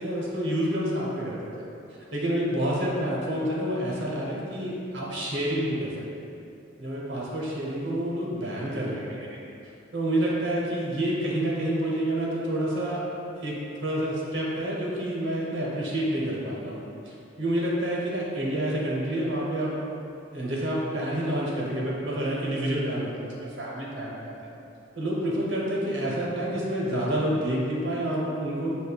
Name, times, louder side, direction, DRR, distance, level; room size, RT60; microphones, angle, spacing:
voice 1, 0.0-1.6 2.1-5.9 6.2-6.3 6.8-9.4 9.9-13.1 13.4-19.8 20.3-24.3 24.9-28.7, right 1 dB, 65° right, -4 dB, 0.7 m, -28 dB
5.3 x 2.2 x 2.3 m, 2.7 s
head